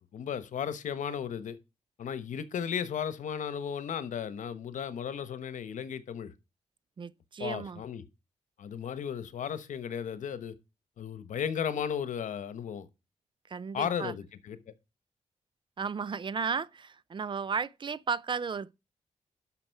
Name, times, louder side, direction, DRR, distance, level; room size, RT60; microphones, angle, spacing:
voice 1, 0.1-1.6 2.0-6.3 7.4-8.0 8.6-10.5 11.0-12.9 13.7-14.7, left 8 dB, 85° left, 1.0 m, -35 dB
voice 2, 7.0-7.8 13.5-14.1 15.8-18.7, right 6 dB, 40° right, 0.5 m, -34 dB
12.0 x 6.0 x 4.6 m
wide cardioid pair, 115°, 13 cm